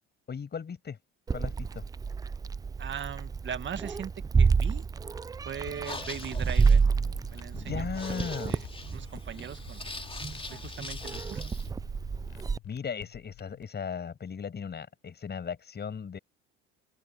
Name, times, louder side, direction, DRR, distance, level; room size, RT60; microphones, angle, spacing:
voice 1, 0.3-1.0 1.3-1.8 7.5-8.6 12.6-16.2, left 6 dB, 35° left, 7.7 m, -37 dB
Meow, 1.3-12.6, right 5 dB, 15° right, 0.3 m, -29 dB
voice 2, 2.8-4.1 4.4-4.9 5.4-6.8 7.3-9.8 10.5-11.5, right 8 dB, 40° right, 1.9 m, -40 dB
sound 1, 5.7-13.6, left 16 dB, 65° left, 4.8 m, -51 dB
sound 2, 5.7-11.7, left 3 dB, 20° left, 4.2 m, -43 dB
open air
supercardioid pair, 80°, 29 cm